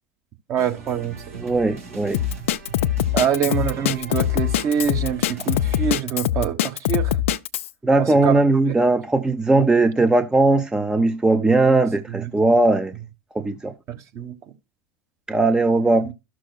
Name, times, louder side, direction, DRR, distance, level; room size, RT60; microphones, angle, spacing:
voice 1, 0.5-1.5 3.1-7.2 7.9-8.4 11.7-11.8 12.1-12.3 13.9-14.3 16.0-16.1, right 8 dB, 40° right, 1.3 m, -25 dB
sound 1, 0.6-6.0, right 3 dB, 80° right, 2.1 m, -40 dB
voice 2, 1.4-2.2 7.8-13.0 13.3-13.7 15.3-16.1, right 2 dB, 10° right, 0.6 m, -19 dB
Drum kit, 2.1-7.7, left 11 dB, 65° left, 0.4 m, -22 dB
13.5 x 6.2 x 2.3 m
figure-of-eight pair, 80°, 7 cm